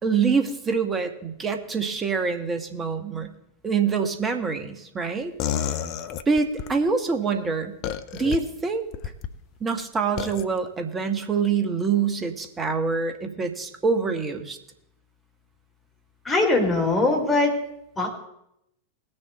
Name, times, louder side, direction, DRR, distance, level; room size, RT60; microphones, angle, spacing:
voice 1, 0.0-3.3 3.6-5.3 6.3-7.7 8.1-8.9 9.6-14.6, right 5 dB, 20° right, 6 dB, 1.3 m, -25 dB
sound 1, 5.4-6.7 7.8-8.4 8.9-9.3 10.2-10.4, left 9 dB, 40° left, 0.7 m, -29 dB
voice 2, 16.2-17.6 18.0-18.1, left 2 dB, 15° left, -1 dB, 3.3 m, -21 dB
19.0 x 6.6 x 4.1 m, 0.79 s
figure-of-eight pair, 90°, 0 cm